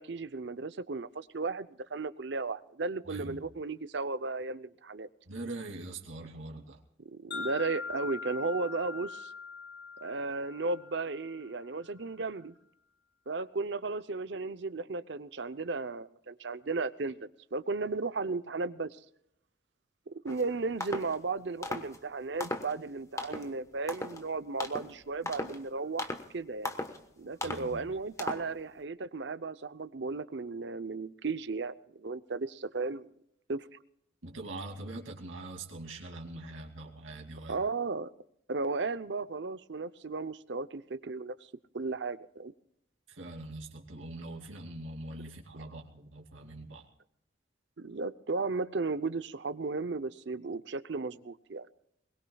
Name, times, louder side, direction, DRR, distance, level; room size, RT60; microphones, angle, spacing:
voice 1, 0.0-5.1 7.0-9.3 10.0-12.5 13.3-19.0 20.2-26.7 27.2-33.1 33.5-33.7 37.5-38.1 38.5-41.3 41.7-42.5 47.8-51.7, right 3 dB, 60° right, 14 dB, 0.7 m, -35 dB
voice 2, 3.1-3.5 5.3-6.8 27.4-27.8 34.2-37.6 43.1-46.9, right 2 dB, 90° right, 2 dB, 2.6 m, -43 dB
Wind chime, 7.3-11.6, left 5 dB, 60° left, 2.2 m, -42 dB
sound 1, 20.3-20.4 20.8-21.1 21.6-22.0 22.4-22.8 23.2-23.5 23.9-24.2 24.6-24.9 25.3-25.6 26.0-26.3 26.6-27.0 27.4-27.7 28.2-28.5, left 2 dB, 15° left, 1.2 m, -37 dB
22.0 x 20.5 x 2.3 m, 0.74 s
head